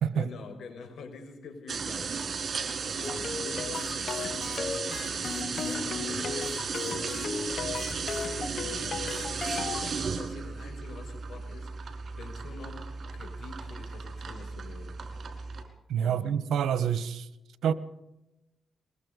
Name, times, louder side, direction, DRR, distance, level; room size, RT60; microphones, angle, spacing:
voice 1, 0.1-9.3 9.7-15.0 16.0-16.4, left 4 dB, 75° left, 5.9 m, -46 dB
sound 1, 1.7-15.6, right 5 dB, 55° right, 5.1 m, -35 dB
sound 2, 3.0-9.9, left 5 dB, 55° left, 1.0 m, -36 dB
voice 2, 15.9-17.3 17.6-17.7, right 8 dB, 90° right, 1.3 m, -27 dB
22.5 x 22.0 x 5.5 m
cardioid pair, 85°, 0 cm